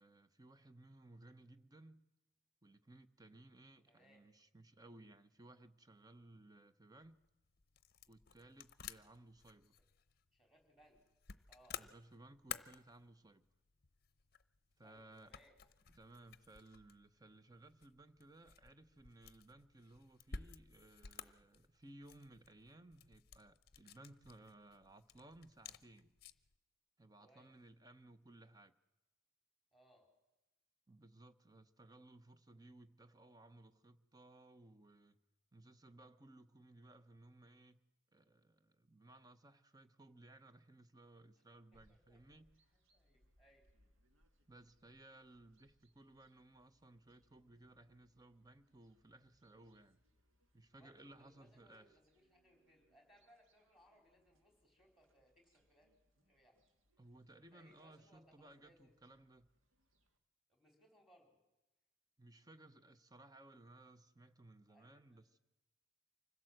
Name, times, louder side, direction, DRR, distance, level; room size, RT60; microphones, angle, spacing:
voice 1, 0.0-2.0 2.6-7.2 8.1-9.7 11.8-13.4 14.8-15.3 15.9-26.2 27.0-28.7 30.9-35.2 35.5-37.8 38.1-42.6 44.5-50.0 50.5-52.0 57.0-59.5 62.2-65.4, right 2 dB, 20° right, 0.8 m, -61 dB
voice 2, 3.9-4.2 10.3-11.0 11.5-11.8 14.8-15.6 27.2-27.5 29.7-30.1 41.7-42.2 42.7-43.7 50.7-55.9 56.2-56.6 57.5-58.9 60.5-61.4 64.7-65.3, equal, ahead, 4.3 m, -69 dB
sound 1, 7.0-26.6, left 7 dB, 50° left, 0.7 m, -55 dB
sound 2, 41.7-60.2, equal, 80° right, 1.9 m, -77 dB
25.0 x 16.5 x 7.8 m
head